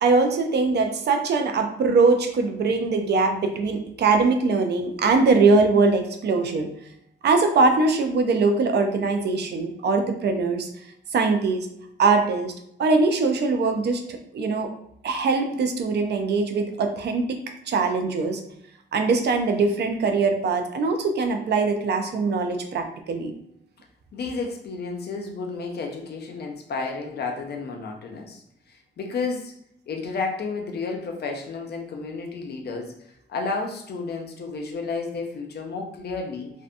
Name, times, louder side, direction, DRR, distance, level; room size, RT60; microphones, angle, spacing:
voice 1, 0.0-6.7 7.2-10.7 11.1-11.7 12.0-12.5 12.8-14.7 15.0-17.4 17.7-18.4 18.9-23.3, right 4 dB, 60° right, 5 dB, 0.4 m, -22 dB
voice 2, 24.1-28.4 28.7-29.5 29.9-32.9 33.3-36.5, left 4 dB, 60° left, 2 dB, 0.5 m, -31 dB
2.6 x 2.1 x 2.5 m, 0.72 s
cardioid pair, 95°, 19 cm